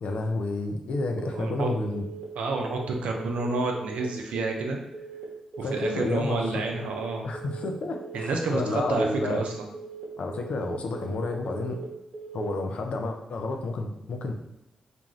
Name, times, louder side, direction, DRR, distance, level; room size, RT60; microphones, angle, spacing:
voice 1, 0.0-2.0 5.6-6.6 7.2-9.4 10.2-11.8 12.3-14.3, left 2 dB, 65° left, 4 dB, 0.4 m, -30 dB
Telephone, 1.3-1.6 1.9-2.2 2.5-2.8 3.1-3.4 3.7-4.0 4.3-4.6 4.9-5.2 5.5-5.8 6.1-6.4 6.7-7.0 7.3-7.6 7.9-8.2 8.5-8.8 9.1-9.4 9.7-10.0 10.3-10.6 10.9-11.2 11.5-11.8 12.1-12.4, right 5 dB, 45° right, 1.0 m, -41 dB
voice 2, 1.3-1.7 2.4-4.8 5.6-7.2 8.1-9.7, right 3 dB, 75° right, 2 dB, 0.4 m, -29 dB
2.5 x 2.4 x 3.1 m, 0.88 s
supercardioid pair, 40°, 2 cm